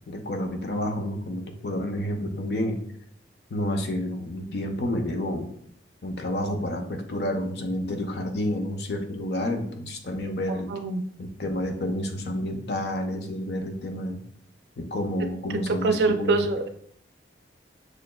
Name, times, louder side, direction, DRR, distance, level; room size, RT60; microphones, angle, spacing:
voice 1, 0.1-2.8 3.5-5.5 6.0-10.7 11.2-14.2 14.8-16.5, left 1 dB, 65° left, 4 dB, 0.6 m, -29 dB
voice 2, 10.7-11.0 15.8-16.8, right 3 dB, 65° right, 6 dB, 0.4 m, -24 dB
6.2 x 2.2 x 2.2 m, 0.65 s
head